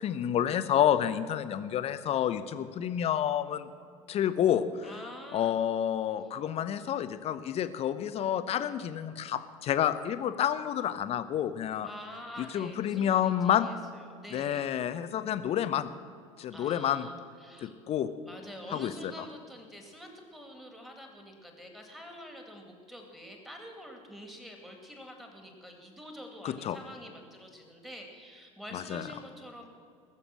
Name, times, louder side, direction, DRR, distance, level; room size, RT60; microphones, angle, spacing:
voice 1, 0.0-3.7 4.1-4.9 5.3-11.9 12.4-13.7 14.3-15.9 16.4-17.1 17.6-18.1 18.7-19.1 26.4-26.8 28.7-29.1, left 10 dB, 35° left, 12 dB, 0.8 m, -29 dB
voice 2, 4.8-5.6 11.8-14.8 16.5-17.7 18.2-29.7, equal, ahead, 2 dB, 2.5 m, -47 dB
20.0 x 7.0 x 6.2 m, 2.3 s
figure-of-eight pair, 70°, 18 cm